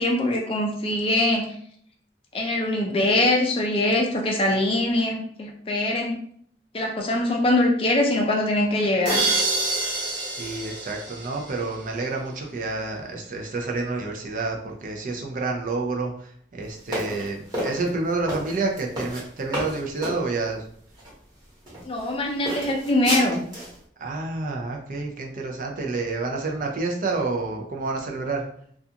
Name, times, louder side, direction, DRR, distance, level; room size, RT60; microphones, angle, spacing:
voice 1, 0.0-1.5 2.3-6.2 6.7-9.2 21.9-23.4, left 1 dB, 30° left, 1 dB, 0.4 m, -23 dB
sound 1, 9.1-11.9, right 2 dB, 80° right, 0.7 m, -27 dB
voice 2, 10.4-20.6 24.0-28.5, right 3 dB, 50° right, 1 dB, 0.4 m, -29 dB
sound 2, 16.9-20.2 20.9-21.1 21.7-22.1 22.5-23.8, right 1 dB, 25° right, 1.1 m, -31 dB
2.4 x 2.3 x 2.7 m, 0.63 s
head